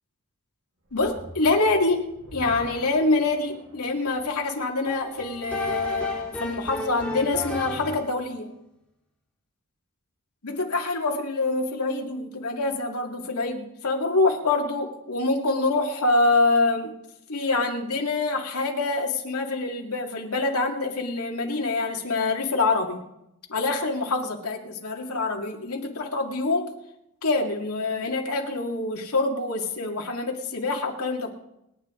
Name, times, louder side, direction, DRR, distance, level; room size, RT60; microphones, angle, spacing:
voice 1, 0.9-8.5 10.4-16.9 17.3-23.0 23.5-26.7 27.2-31.3, left 3 dB, 85° left, 1 dB, 2.2 m, -25 dB
sound 1, 0.9-6.2, equal, 60° right, 2.5 m, -47 dB
sound 2, 4.8-8.2, left 2 dB, 5° left, 3.0 m, -34 dB
29.0 x 10.0 x 3.8 m, 0.85 s
head